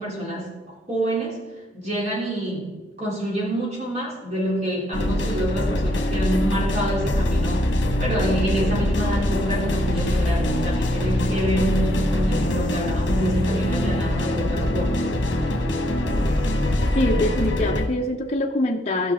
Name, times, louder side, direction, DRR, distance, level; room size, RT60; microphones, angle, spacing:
voice 1, 0.0-1.4 1.7-15.1, right 1 dB, 40° right, -3 dB, 2.9 m, -27 dB
sound 1, 4.9-17.9, left 1 dB, 70° left, 1.3 m, -23 dB
sound 2, 8.6-17.5, left 1 dB, ahead, 2.0 m, -37 dB
voice 2, 17.0-19.1, left 1 dB, 35° left, 1 dB, 0.7 m, -23 dB
15.0 x 5.9 x 3.5 m, 1.2 s
head